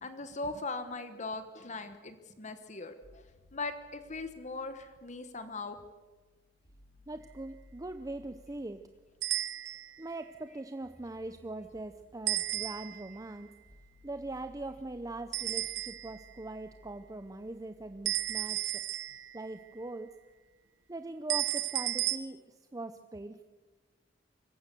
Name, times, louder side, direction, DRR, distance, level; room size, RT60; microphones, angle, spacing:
voice 1, 0.0-3.2 3.5-5.8, left 3 dB, 40° left, 10 dB, 1.2 m, -40 dB
sound 1, 3.0-21.0, left 1 dB, 75° left, 4.5 m, -62 dB
voice 2, 7.1-8.8 10.0-13.5 14.0-18.8 19.3-20.1 20.9-22.4 22.7-23.4, right 2 dB, 20° right, 9 dB, 0.6 m, -41 dB
sound 2, 9.2-10.0 12.3-13.1 15.3-16.2 18.1-19.5 21.3-22.2, right 15 dB, 70° right, 0.9 m, -33 dB
25.0 x 15.5 x 6.8 m, 1.3 s
head